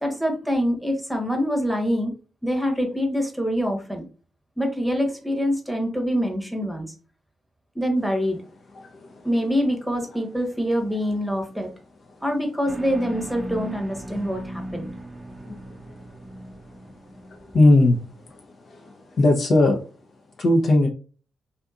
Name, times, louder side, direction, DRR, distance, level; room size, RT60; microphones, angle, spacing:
voice 1, 0.0-2.1 2.4-4.1 4.6-6.9 7.7-8.4 9.2-11.7 12.2-14.9, equal, ahead, 3 dB, 0.9 m, -25 dB
sound 1, 12.7-18.1, right 1 dB, 25° right, 0.6 m, -37 dB
voice 2, 17.5-18.0 19.2-19.8 20.4-20.9, left 2 dB, 55° left, 1 dB, 0.6 m, -16 dB
2.6 x 2.5 x 2.3 m, 0.36 s
hypercardioid pair, 40°, 0 cm